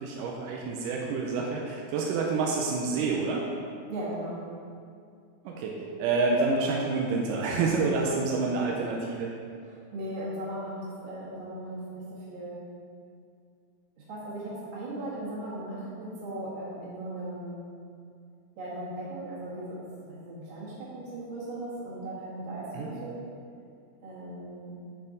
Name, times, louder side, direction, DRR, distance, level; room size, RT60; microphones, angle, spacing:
voice 1, 0.0-3.5 5.5-9.3 22.7-22.9, right 4 dB, 90° right, -1 dB, 2.2 m, -28 dB
voice 2, 3.9-4.4 9.6-10.8 11.0-12.6 14.0-17.6 18.6-19.8 20.1-23.2 24.0-24.8, right 1 dB, 45° right, -7 dB, 2.2 m, -37 dB
9.2 x 4.4 x 4.0 m, 2.3 s
omnidirectional pair, 3.7 m